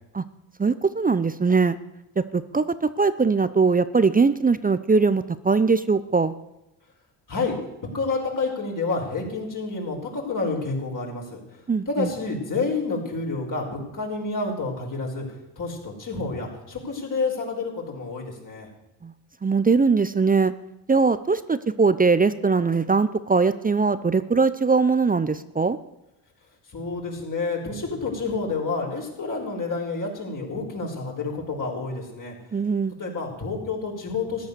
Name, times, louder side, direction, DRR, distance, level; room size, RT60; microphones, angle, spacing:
voice 1, 0.6-1.8 2.3-6.3 11.7-12.1 19.0-19.1 19.4-20.5 20.9-25.8 32.5-32.9, right 4 dB, 20° right, 14 dB, 0.7 m, -21 dB
voice 2, 7.9-11.4 11.9-15.3 15.6-18.7 26.7-32.3 33.0-34.5, left 3 dB, 40° left, 0 dB, 5.3 m, -29 dB
14.0 x 10.5 x 6.8 m, 0.92 s
supercardioid pair, 70°, 48 cm